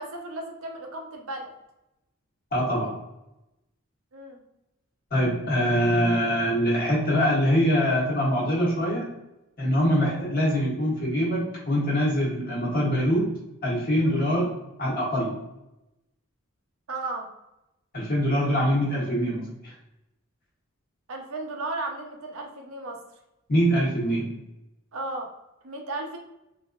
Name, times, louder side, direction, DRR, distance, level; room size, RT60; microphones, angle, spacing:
voice 1, 0.0-1.5 4.1-4.4 14.2-14.3 16.9-17.3 21.1-23.0 24.9-25.3 25.6-26.2, right 2 dB, 85° right, 2 dB, 0.7 m, -34 dB
voice 2, 2.5-2.9 5.1-9.1 9.6-13.3 13.6-15.3 17.9-19.7 23.5-24.3, equal, 45° left, -5 dB, 1.3 m, -24 dB
3.9 x 2.6 x 2.4 m, 0.92 s
head